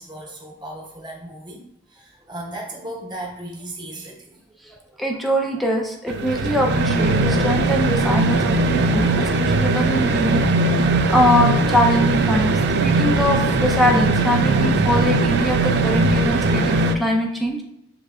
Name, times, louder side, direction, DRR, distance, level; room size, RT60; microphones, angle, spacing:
voice 1, 0.0-1.6 1.9-4.4, right 1 dB, 25° right, -2 dB, 1.0 m, -36 dB
voice 2, 5.0-17.6, equal, ahead, 0 dB, 0.5 m, -22 dB
sound 1, 6.1-17.0, right 2 dB, 55° right, 0.3 m, -19 dB
6.8 x 3.2 x 2.4 m, 0.79 s
head